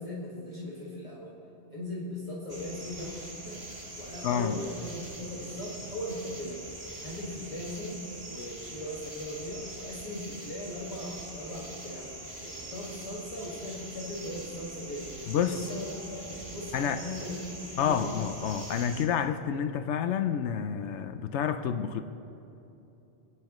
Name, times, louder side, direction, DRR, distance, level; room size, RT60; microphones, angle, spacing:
voice 1, 0.0-1.3 1.7-15.2 15.5-18.1, left 1 dB, 30° left, -7 dB, 1.9 m, -39 dB
sound 1, 2.5-19.1, right 1 dB, 30° right, 1.4 m, -43 dB
voice 2, 4.2-4.6 15.3-15.6 16.7-17.0 17.8-22.0, left 8 dB, 80° left, 9 dB, 0.9 m, -29 dB
26.0 x 9.7 x 3.1 m, 2.9 s
omnidirectional pair, 1.2 m